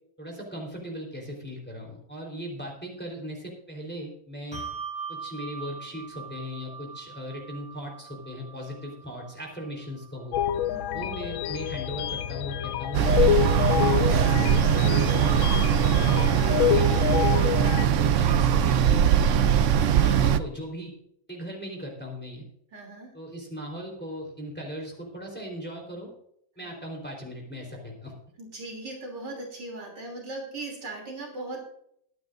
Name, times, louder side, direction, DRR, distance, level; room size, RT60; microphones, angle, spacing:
voice 1, 0.2-4.6 5.1-10.4 10.9-15.4 15.9-19.2 19.7-20.9 21.3-22.4 23.1-26.1 26.6-28.1, equal, 5° left, 0 dB, 3.8 m, -38 dB
Bell, 4.5-11.4, right 6 dB, 15° right, 2.5 m, -42 dB
sound 1, 10.3-17.9, left 12 dB, 85° left, 1.4 m, -27 dB
voice 2, 10.7-11.1 22.7-23.1 26.6-26.8 28.4-31.6, right 2 dB, 60° right, 0 dB, 3.7 m, -39 dB
sound 2, 12.9-20.4, right 8 dB, 85° right, 0.6 m, -21 dB
22.5 x 9.2 x 2.6 m, 0.70 s
omnidirectional pair, 2.1 m